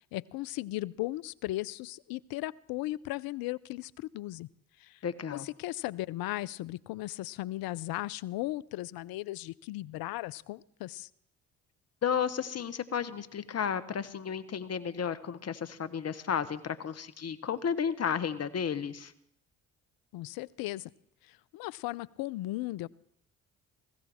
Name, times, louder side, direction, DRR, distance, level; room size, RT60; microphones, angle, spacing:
voice 1, 0.1-4.5 4.8-5.0 5.3-11.1 20.1-20.9 21.3-22.9, left 17 dB, 65° left, 22 dB, 0.6 m, -36 dB
voice 2, 5.0-5.5 12.0-19.1, left 7 dB, 40° left, 13 dB, 1.2 m, -33 dB
18.5 x 15.5 x 3.6 m, 0.72 s
hypercardioid pair, 55°, 38 cm